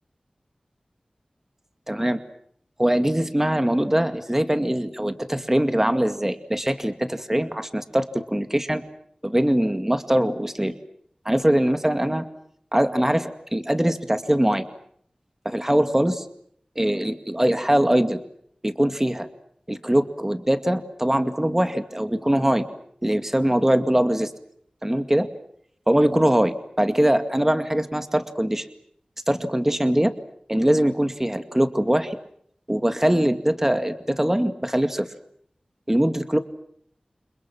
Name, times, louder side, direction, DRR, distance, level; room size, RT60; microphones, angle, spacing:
voice 1, 1.9-2.2 2.8-8.8 9.2-10.7 11.3-12.2 12.7-14.6 15.4-16.2 16.8-18.2 18.6-19.3 19.7-22.7 23.0-24.3 24.8-25.3 25.9-28.7 29.3-30.1 30.5-32.2 32.7-35.1 35.9-36.4, right 1 dB, 15° right, 8 dB, 2.2 m, -22 dB
30.0 x 28.0 x 6.2 m, 0.68 s
wide cardioid pair, 65°, 2 cm